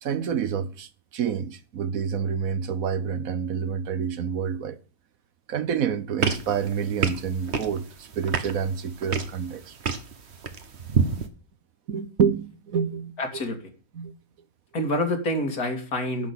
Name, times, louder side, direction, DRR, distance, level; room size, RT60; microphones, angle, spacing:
voice 1, 0.0-4.8 5.5-9.8 11.2-11.3 11.9-13.1 13.9-14.1, right 7 dB, 70° right, 1.4 m, -28 dB
sound 1, 6.2-11.3, right 5 dB, 50° right, 1.4 m, -29 dB
voice 2, 13.2-13.6 14.7-16.3, left 1 dB, 85° left, 2.8 m, -27 dB
10.5 x 6.1 x 8.5 m
omnidirectional pair, 1.5 m